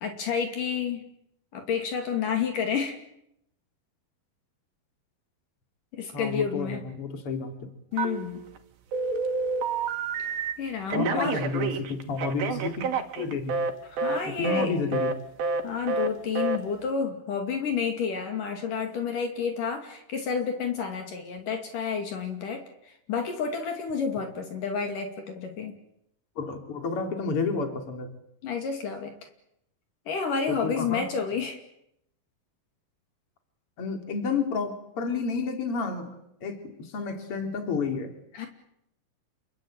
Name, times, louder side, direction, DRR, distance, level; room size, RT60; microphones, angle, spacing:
voice 1, 0.0-1.0 1.5-3.0 5.9-6.8 7.9-8.4 10.6-11.5 13.9-14.7 15.6-25.8 28.4-29.1 30.1-31.6 38.3-38.5, left 6 dB, 65° left, 5 dB, 4.1 m, -30 dB
voice 2, 6.1-7.5 10.9-12.9 13.2-13.6 14.2-15.2 26.4-28.1 30.5-31.1 33.8-36.1 36.4-38.1, left 4 dB, 40° left, 5 dB, 4.0 m, -30 dB
Telephone, 8.0-8.6 8.9-10.5 10.9-13.7 14.0-14.2 14.4-14.7 14.9-15.1 15.4-15.6 15.9-16.1 16.4-16.6, right 4 dB, 85° right, 4.0 m, -28 dB
29.0 x 22.0 x 9.0 m, 0.79 s
omnidirectional pair, 4.1 m